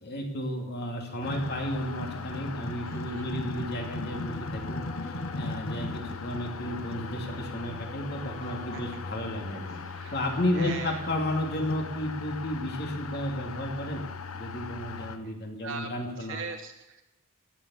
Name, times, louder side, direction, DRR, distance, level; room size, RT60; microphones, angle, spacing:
voice 1, 0.0-9.8 10.1-14.0 14.3-16.4, left 1 dB, 50° left, 1 dB, 2.7 m, -33 dB
sound 1, 1.2-15.2, left 4 dB, 70° left, 0.8 m, -38 dB
sound 2, 2.2-11.5 11.8-12.2, left 1 dB, 30° left, 0.7 m, -46 dB
voice 2, 2.9-3.3 8.4-8.8 9.7-10.2 10.5-11.0 15.2-15.3 15.6-15.9 16.2-17.0, right 5 dB, 60° right, 5 dB, 1.0 m, -41 dB
15.5 x 7.4 x 8.5 m, 0.98 s
head